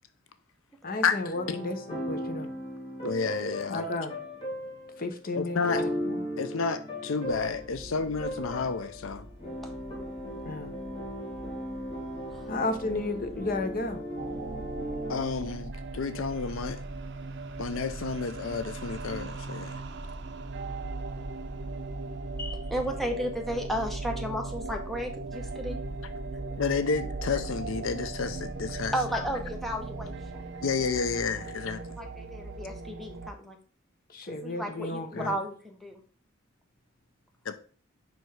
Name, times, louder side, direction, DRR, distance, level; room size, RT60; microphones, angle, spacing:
voice 1, 0.8-2.5 3.7-4.1 5.0-6.3 10.4-10.8 12.5-14.3 22.4-22.6 34.1-35.4, left 2 dB, 45° left, 0.9 m, -33 dB
sound 1, 0.9-15.2, equal, 25° left, 2.0 m, -37 dB
voice 2, 3.0-3.8 5.3-5.8 6.4-9.3 15.1-16.8 17.6-19.8 26.6-28.9 30.6-31.8 35.1-35.3 37.5-37.6, left 5 dB, 75° left, 0.5 m, -30 dB
sound 2, 7.2-26.0, right 1 dB, 30° right, 0.9 m, -48 dB
sound 3, 14.2-33.3, right 3 dB, 60° right, 0.6 m, -38 dB
voice 3, 22.7-25.8 28.9-30.4 32.0-33.6 34.3-36.0, equal, ahead, 0.9 m, -34 dB
5.3 x 4.7 x 4.7 m
head